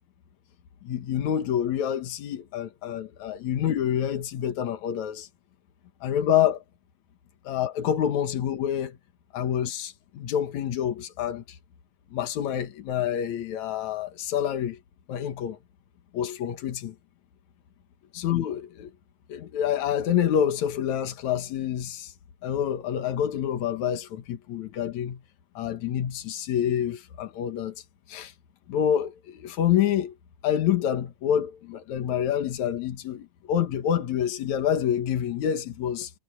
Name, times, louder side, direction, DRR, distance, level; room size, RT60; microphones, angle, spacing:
voice 1, 0.8-5.3 6.0-6.6 7.4-9.0 9.3-11.6 12.1-14.8 15.1-15.6 16.1-16.9 18.1-18.9 19.3-22.1 22.4-25.2 25.5-27.8 28.1-28.3 28.7-30.1 30.4-36.1, left 9 dB, 80° left, 1.6 m, -27 dB
omnidirectional pair, 5.6 m